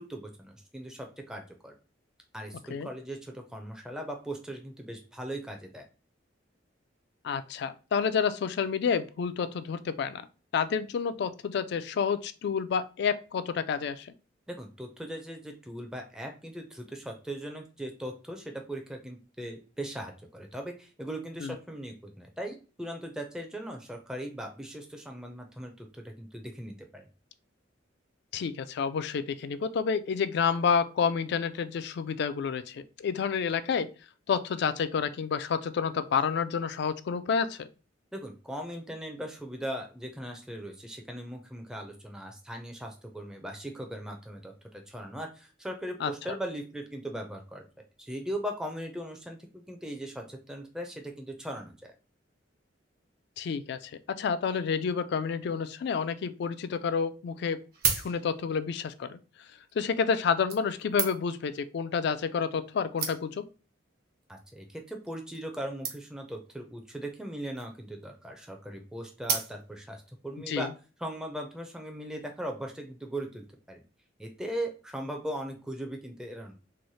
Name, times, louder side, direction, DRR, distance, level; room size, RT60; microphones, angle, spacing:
voice 1, 0.0-1.7 2.3-5.8 14.5-27.1 38.1-47.6 48.0-51.9 64.3-70.7 71.0-73.8 74.2-76.5, right 1 dB, 5° right, 2 dB, 0.4 m, -39 dB
voice 2, 7.2-10.3 10.5-14.1 21.4-21.6 28.3-33.9 34.3-37.7 46.0-46.1 53.4-57.6 58.0-59.2 59.8-63.4 70.5-70.7, left 6 dB, 60° left, 12 dB, 0.3 m, -29 dB
sound 1, 56.7-56.8 57.5-58.6 59.5-59.7 60.5-61.5 62.3-62.4 62.6-62.7 63.0-63.5 64.2-64.5 64.8-64.9 65.1-65.2 65.3-65.5 65.8-66.3 67.3-67.8 69.2-69.9 70.5-70.6, right 6 dB, 55° right, 0.8 m, -33 dB
3.1 x 2.0 x 4.0 m, 0.34 s
head